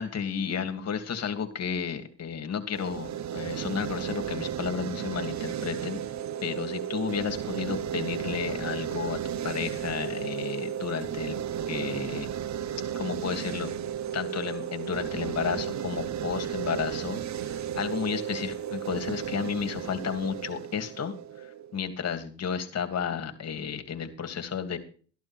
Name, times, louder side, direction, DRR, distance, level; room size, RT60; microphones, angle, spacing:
voice 1, 0.0-6.0 6.4-11.3 11.7-12.3 13.0-13.7 14.1-17.2 17.4-24.8, left 7 dB, 55° left, 7 dB, 2.8 m, -32 dB
sound 1, 2.7-21.8, right 9 dB, 60° right, 0.9 m, -34 dB
14.0 x 11.5 x 4.5 m, 0.40 s
cardioid pair, 80°, 31 cm